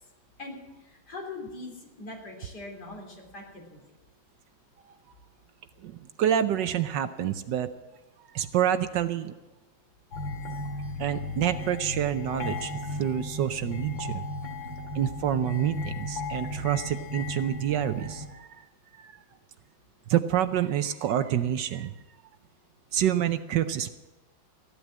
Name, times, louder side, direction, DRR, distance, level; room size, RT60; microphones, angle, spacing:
voice 1, 0.8-3.8, left 2 dB, 55° left, 0 dB, 4.0 m, -41 dB
voice 2, 5.8-7.7 8.3-9.3 11.0-14.2 14.9-18.5 19.0-19.1 20.1-21.9 22.9-24.0, right 10 dB, 70° right, 11 dB, 1.3 m, -27 dB
sound 1, 10.1-18.3, left 2 dB, 75° left, 2.7 m, -35 dB
15.5 x 11.5 x 7.4 m, 1.1 s
omnidirectional pair, 2.1 m